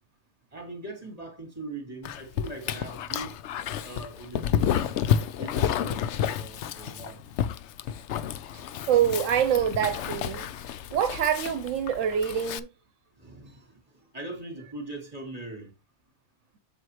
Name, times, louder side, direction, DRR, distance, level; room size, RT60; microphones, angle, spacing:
voice 1, 0.5-3.4 3.8-4.9 5.4-7.2 13.2-13.8 14.1-15.7, right 2 dB, 30° right, 2.7 m, -41 dB
Dog, 2.0-12.6, left 9 dB, 70° left, 0.9 m, -30 dB
voice 2, 8.9-10.5 10.9-12.7, right 9 dB, 80° right, 1.0 m, -25 dB
7.8 x 6.9 x 3.0 m
omnidirectional pair, 1.3 m